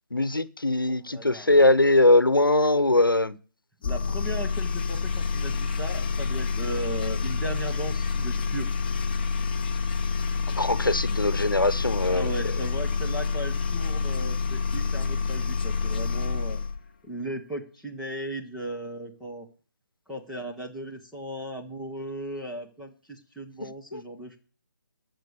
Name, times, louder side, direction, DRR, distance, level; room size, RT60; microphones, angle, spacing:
voice 1, 0.1-3.3 10.6-12.2 23.9-24.0, left 2 dB, 75° left, 1.0 m, -21 dB
voice 2, 0.9-1.5 3.8-8.7 12.1-16.6 17.0-19.5 20.1-24.4, right 1 dB, ahead, 1.1 m, -36 dB
sound 1, 3.8-16.8, left 4 dB, 30° left, 0.9 m, -28 dB
14.0 x 6.2 x 7.0 m
figure-of-eight pair, 150°, 11 cm